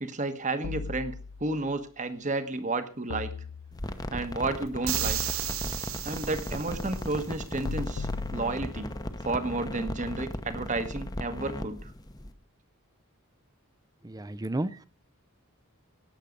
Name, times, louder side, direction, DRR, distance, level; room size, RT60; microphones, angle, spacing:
voice 1, 0.0-1.1 1.4-3.3 4.1-5.2 6.0-8.9 9.2-11.9, right 2 dB, 35° right, 10 dB, 1.3 m, -32 dB
sound 1, 0.6-1.7 3.1-4.1 4.9-6.0 7.6-9.1, left 4 dB, 80° left, 0.5 m, -38 dB
sound 2, 3.7-12.3, left 1 dB, 20° left, 0.9 m, -37 dB
sound 3, 4.9-7.1, right 12 dB, 65° right, 1.3 m, -33 dB
voice 2, 14.0-14.8, right 1 dB, 15° right, 16 dB, 0.5 m, -32 dB
18.0 x 7.4 x 5.2 m, 0.40 s
head